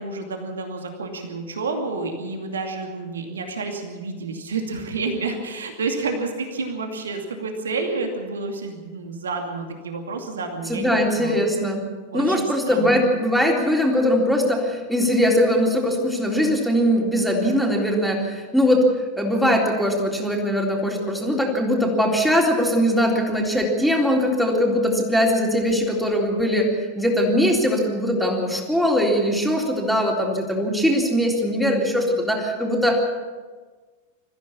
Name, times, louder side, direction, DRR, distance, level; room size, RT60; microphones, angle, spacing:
voice 1, 0.0-11.4 12.1-13.0, right 3 dB, 70° right, 4 dB, 2.5 m, -30 dB
voice 2, 10.7-11.9 12.1-18.9 19.2-33.0, equal, ahead, -1 dB, 3.6 m, -21 dB
24.0 x 15.0 x 7.2 m, 1.4 s
figure-of-eight pair, 90°, 0 cm